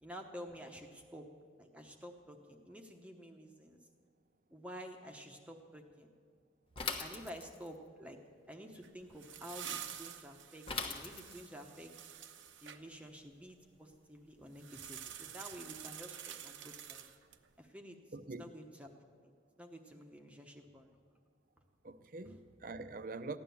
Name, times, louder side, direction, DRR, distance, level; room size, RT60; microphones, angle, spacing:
voice 1, 0.0-1.3 1.6-3.8 4.5-6.1 7.0-8.2 8.5-11.9 12.6-17.1 17.6-18.0 18.4-18.9 19.6-20.9 22.3-22.4, equal, 5° right, 0.9 m, -50 dB
Bicycle / Mechanisms, 6.8-7.8 10.7-11.6, left 4 dB, 30° left, 1.1 m, -40 dB
sound 1, 8.8-12.8 14.5-17.5, right 9 dB, 80° right, 0.9 m, -48 dB
voice 2, 18.1-18.5 21.8-23.4, right 3 dB, 45° right, 0.6 m, -44 dB
15.5 x 11.0 x 7.0 m
head